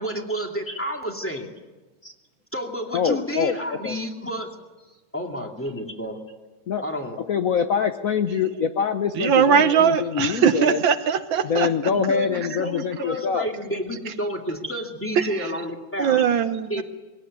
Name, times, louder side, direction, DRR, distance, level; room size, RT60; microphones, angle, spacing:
voice 1, 0.0-1.6 2.5-4.5 5.1-6.2 6.8-7.2 12.1-16.2 16.7-16.8, equal, 5° left, 2 dB, 2.1 m, -30 dB
voice 2, 2.9-3.6 3.8-4.0 6.7-6.8 7.3-10.8 11.4-13.5, left 6 dB, 55° left, 8 dB, 0.9 m, -24 dB
voice 3, 9.2-11.7 15.2-15.5 16.0-16.8, right 7 dB, 65° right, 10 dB, 1.5 m, -20 dB
20.5 x 17.5 x 9.5 m, 1.2 s
omnidirectional pair, 2.4 m